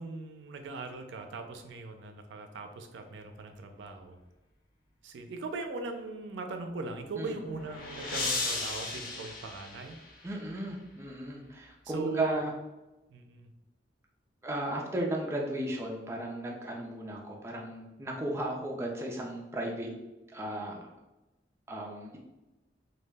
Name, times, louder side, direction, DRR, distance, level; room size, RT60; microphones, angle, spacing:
voice 1, 0.0-4.2 5.0-10.0 11.8-12.4 13.1-13.5, right 3 dB, 90° right, 6 dB, 0.4 m, -40 dB
sound 1, 7.1-10.4, left 3 dB, 50° left, 0.4 m, -36 dB
voice 2, 10.2-12.5 14.4-19.9 20.3-20.9 21.7-22.2, right 1 dB, 15° right, -1 dB, 0.4 m, -35 dB
2.2 x 2.0 x 3.3 m, 1.0 s
head